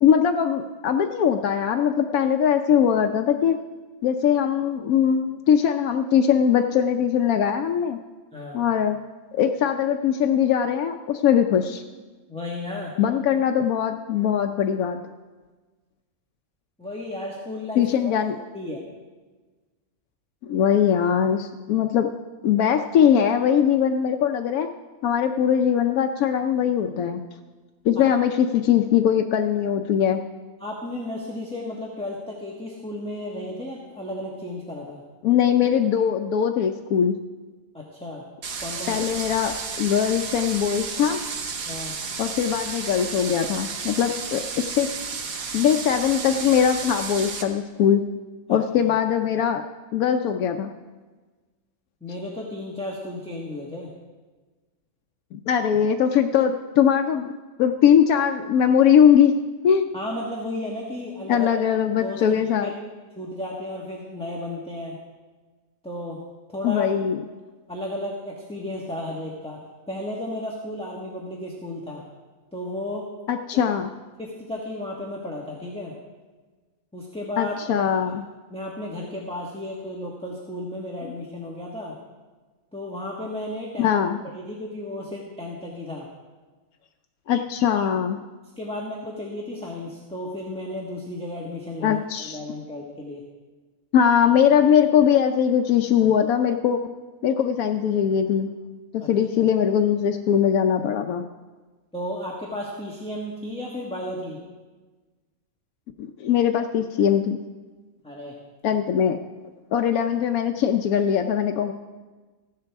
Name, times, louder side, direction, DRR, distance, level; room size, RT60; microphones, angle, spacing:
voice 1, 0.0-3.6 4.0-8.0 8.5-9.0 9.3-11.8 13.0-15.0 17.8-18.3 20.4-22.1 22.4-24.7 25.0-27.2 27.8-30.2 35.2-37.1 38.9-41.2 42.2-44.9 45.5-48.0 48.5-49.6 49.9-50.7 55.3-57.3 57.6-59.9 61.3-62.7 66.6-67.2 73.3-73.9 77.4-78.2 81.0-81.1 83.8-84.2 87.3-88.2 91.8-92.4 93.9-96.8 97.2-98.5 98.9-101.3 106.0-107.4 108.6-109.2 109.7-111.7, left 8 dB, 85° left, 5 dB, 1.1 m, -21 dB
voice 2, 12.3-12.9 16.8-18.2 18.5-18.8 27.9-28.1 30.6-35.0 37.7-38.2 38.6-39.0 41.6-41.9 48.8-48.9 52.0-53.9 59.9-61.5 62.0-62.8 63.1-65.0 65.8-66.2 66.5-66.9 67.7-69.6 69.9-72.0 72.5-73.1 74.2-75.9 76.9-78.1 78.5-82.0 82.7-83.9 84.3-86.1 88.6-93.2 99.0-99.1 101.9-104.4 108.0-108.4, left 1 dB, 5° left, -3 dB, 1.3 m, -33 dB
sound 1, 38.4-47.4, right 5 dB, 75° right, 1.5 m, -32 dB
15.0 x 11.5 x 3.5 m, 1.3 s
omnidirectional pair, 1.5 m